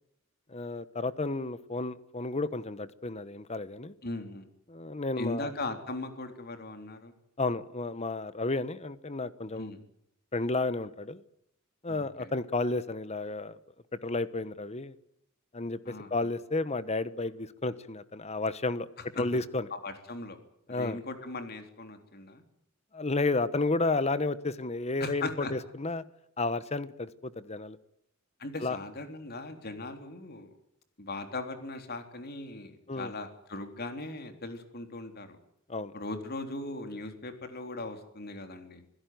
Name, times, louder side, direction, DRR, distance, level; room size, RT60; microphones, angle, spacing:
voice 1, 0.5-3.9 4.7-5.5 7.4-9.7 10.3-11.2 11.8-13.6 14.0-14.9 15.5-18.9 19.1-19.7 20.7-21.0 22.9-26.0 26.4-27.8 28.6-28.8 32.9-33.1 35.7-35.9, left 3 dB, 30° left, 15 dB, 1.1 m, -32 dB
voice 2, 4.0-4.5 5.2-7.1 9.6-9.8 11.9-12.3 15.8-16.3 19.2-19.4 19.7-20.4 20.7-22.4 25.0-25.5 28.4-30.5 31.0-35.4 35.9-38.8, left 2 dB, 50° left, 7 dB, 3.6 m, -39 dB
26.5 x 16.5 x 9.4 m, 0.75 s
head